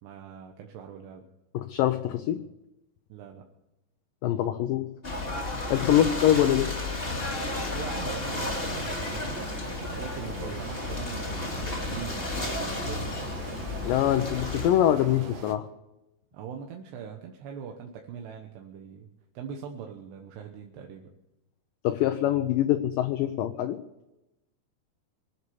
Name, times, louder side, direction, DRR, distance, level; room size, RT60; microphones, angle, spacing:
voice 1, 0.0-1.3 3.1-3.4 5.9-6.0 7.7-9.3 9.9-13.2 16.3-19.1 19.3-21.1, right 7 dB, 90° right, 2 dB, 3.4 m, -41 dB
voice 2, 1.5-2.4 4.2-4.9 5.7-6.7 13.8-15.7 21.8-23.8, left 12 dB, 80° left, 8 dB, 2.0 m, -24 dB
Ocean / Boat Water vehicle, 5.0-14.7, left 2 dB, 20° left, 1.8 m, -33 dB
sound 1, 8.2-15.5, right 5 dB, 60° right, 1.8 m, -41 dB
24.5 x 8.1 x 7.1 m, 0.92 s
omnidirectional pair, 4.7 m